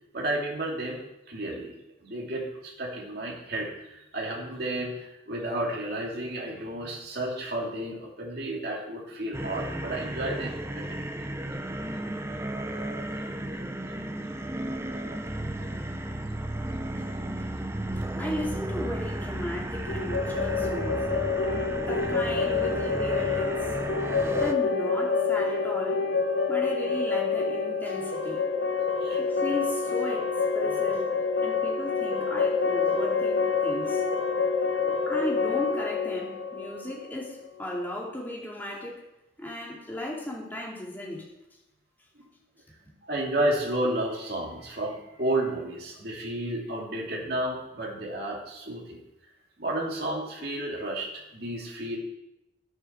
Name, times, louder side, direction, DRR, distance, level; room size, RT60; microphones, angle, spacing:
voice 1, 0.1-1.0 1.3-11.1 12.6-14.0 14.7-16.2 16.8-16.9 17.7-18.0 29.0-29.2 34.8-35.0 42.2-42.3 43.1-49.0 49.6-52.0, right 1 dB, 55° right, -3 dB, 2.8 m, -32 dB
sound 1, 9.3-24.5, right 1 dB, 15° right, 0.6 m, -34 dB
voice 2, 18.1-21.0 21.8-23.7 24.4-26.1 26.5-28.5 29.2-30.3 30.5-31.1 31.4-34.0 35.1-39.0 39.4-41.3, left 1 dB, 10° left, -3 dB, 2.5 m, -36 dB
sound 2, 19.9-37.6, left 5 dB, 75° left, 1.6 m, -27 dB
11.0 x 7.5 x 6.1 m, 0.89 s
head